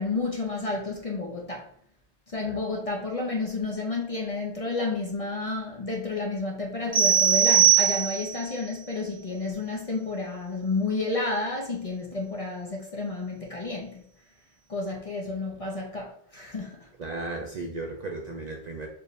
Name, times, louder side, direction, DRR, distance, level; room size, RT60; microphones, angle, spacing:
voice 1, 0.0-1.7 2.3-14.0 14.7-16.9, left 3 dB, 40° left, -1 dB, 0.6 m, -31 dB
sound 1, 6.9-8.5, right 9 dB, 10° right, 0.8 m, -20 dB
voice 2, 17.0-18.9, right 2 dB, 50° right, 1 dB, 0.6 m, -35 dB
4.5 x 2.6 x 3.2 m, 0.63 s
omnidirectional pair, 1.1 m